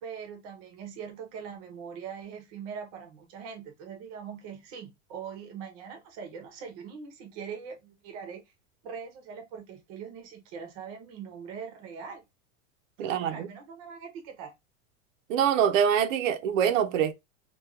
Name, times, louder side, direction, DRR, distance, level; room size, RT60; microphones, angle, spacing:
voice 1, 0.0-8.4 8.8-12.2 13.0-14.5, right 6 dB, 30° right, 0.5 m, -42 dB
voice 2, 13.0-13.5 15.3-17.1, right 8 dB, 85° right, 0.6 m, -24 dB
3.0 x 2.2 x 2.2 m
supercardioid pair, 175°, 38 cm